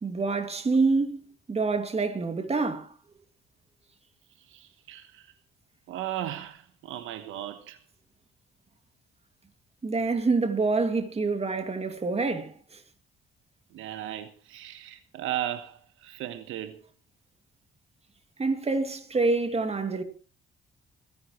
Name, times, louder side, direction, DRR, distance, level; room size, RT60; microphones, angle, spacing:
voice 1, 0.0-2.9 9.8-12.8 18.4-20.0, right 3 dB, 30° right, 2.4 m, -27 dB
voice 2, 4.5-5.3 5.9-7.8 13.7-16.8, right 12 dB, 90° right, 1.2 m, -36 dB
26.0 x 11.0 x 3.1 m
cardioid pair, 90°, 20 cm